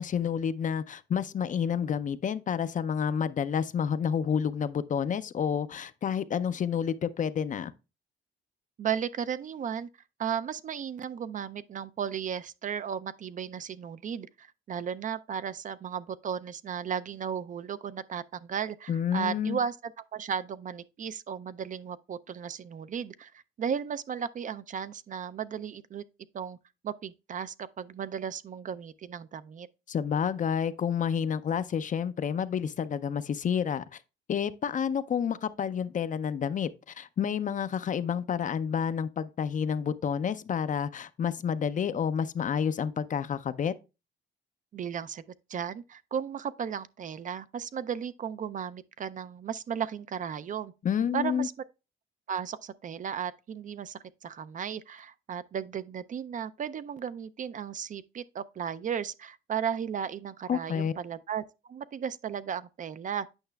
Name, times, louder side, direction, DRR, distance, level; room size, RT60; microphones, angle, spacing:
voice 1, 0.0-7.7 18.9-19.6 29.9-34.0 34.3-43.7 50.8-51.5 60.5-60.9, left 7 dB, 40° left, 0.4 m, -29 dB
voice 2, 8.8-9.9 10.2-26.0 26.3-26.6 26.8-29.7 44.7-45.2 45.5-50.7 51.1-51.5 52.3-63.3, right 8 dB, 40° right, 0.4 m, -35 dB
8.8 x 5.5 x 2.2 m
cardioid pair, 90°, 20 cm